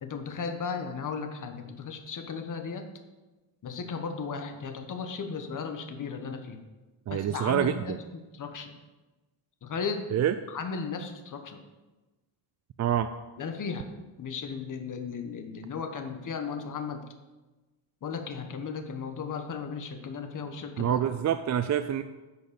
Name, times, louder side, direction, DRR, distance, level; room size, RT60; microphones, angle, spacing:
voice 1, 0.0-2.8 3.6-6.6 7.1-8.0 8.3-8.8 9.6-10.0 10.5-11.6 13.4-13.9 14.2-17.0 18.0-21.0, left 5 dB, 45° left, 6 dB, 1.4 m, -35 dB
voice 2, 7.1-8.0 10.1-10.3 12.8-13.1 20.8-22.0, right 10 dB, 40° right, 10 dB, 0.4 m, -26 dB
10.5 x 6.4 x 7.0 m, 1.2 s
cardioid pair, 150°, 45 cm